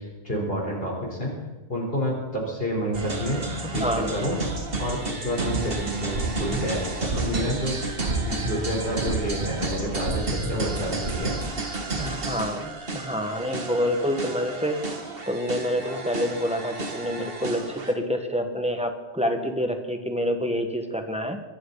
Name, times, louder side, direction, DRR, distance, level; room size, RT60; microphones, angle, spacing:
voice 1, 0.0-1.3 1.7-4.4 4.8-7.8 8.2-11.4, equal, 55° left, -2 dB, 4.4 m, -29 dB
sound 1, 2.9-17.9, right 3 dB, 55° right, 1.9 m, -32 dB
voice 2, 3.6-4.2 11.9-14.8 15.3-21.4, equal, 5° right, 4 dB, 1.7 m, -27 dB
sound 2, 5.5-11.1, right 2 dB, 75° right, 2.8 m, -32 dB
22.5 x 14.5 x 4.2 m, 1.2 s
omnidirectional pair, 1.2 m